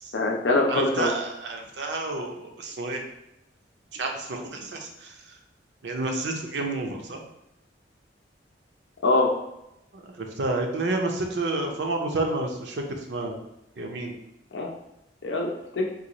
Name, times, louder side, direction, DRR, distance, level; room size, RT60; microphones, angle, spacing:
voice 1, 0.1-1.1 9.0-9.3 14.5-14.7 15.2-15.9, left 2 dB, 80° left, 0 dB, 0.5 m, -23 dB
voice 2, 0.7-3.0 3.9-5.1 5.8-7.2 9.9-13.4 13.8-14.2, right 2 dB, 70° right, 2 dB, 0.6 m, -30 dB
3.9 x 2.4 x 2.9 m, 0.86 s
head